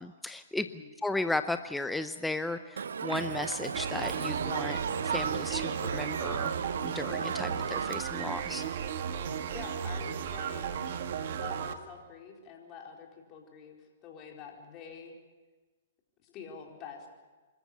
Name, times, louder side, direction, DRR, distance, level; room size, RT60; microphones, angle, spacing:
voice 1, 0.0-0.7 1.0-4.8 5.0-6.5 6.8-8.7, left 2 dB, 5° left, 10 dB, 0.7 m, -35 dB
Buzz, 1.2-10.7, right 14 dB, 35° right, 1.0 m, -51 dB
Crowd, 2.8-8.0, right 6 dB, 75° right, 0.8 m, -35 dB
sound 1, 3.7-11.7, right 7 dB, 60° right, 1.6 m, -35 dB
voice 2, 9.5-10.8 11.3-15.1 16.2-17.1, left 6 dB, 30° left, 0 dB, 4.4 m, -47 dB
25.5 x 14.0 x 8.6 m, 1.3 s
hypercardioid pair, 125°, 0 cm